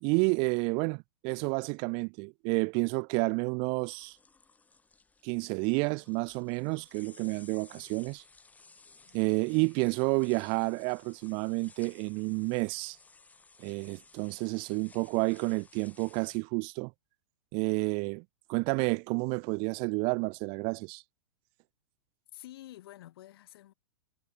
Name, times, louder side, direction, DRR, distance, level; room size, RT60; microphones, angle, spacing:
voice 1, 0.0-4.2 5.2-8.2 9.1-13.0 13.6-16.9 17.5-18.2 18.5-21.0, right 35 dB, 40° right, 0.4 m, -30 dB
sound 1, 3.9-16.4, left 4 dB, 10° left, 4.2 m, -58 dB
voice 2, 22.3-23.7, left 14 dB, 65° left, 7.6 m, -49 dB
hypercardioid pair, 120°, 14 cm